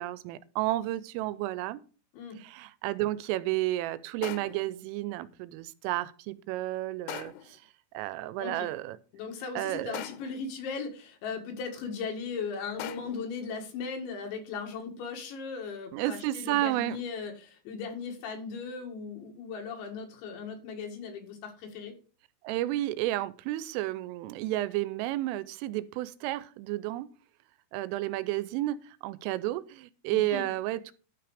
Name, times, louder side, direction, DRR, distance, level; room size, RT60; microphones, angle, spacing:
voice 1, 0.0-1.8 2.4-7.6 7.9-9.0 9.6-10.0 15.9-17.0 22.4-27.1 27.7-30.9, right 16 dB, 90° right, 16 dB, 3.2 m, -32 dB
sound 1, 4.2-4.7 7.1-7.6 9.9-10.5 12.8-13.3, left 12 dB, 85° left, 3.4 m, -41 dB
voice 2, 9.1-21.9 30.1-30.5, left 5 dB, 70° left, 2 dB, 4.2 m, -38 dB
12.5 x 5.9 x 4.9 m, 0.37 s
omnidirectional pair, 5.7 m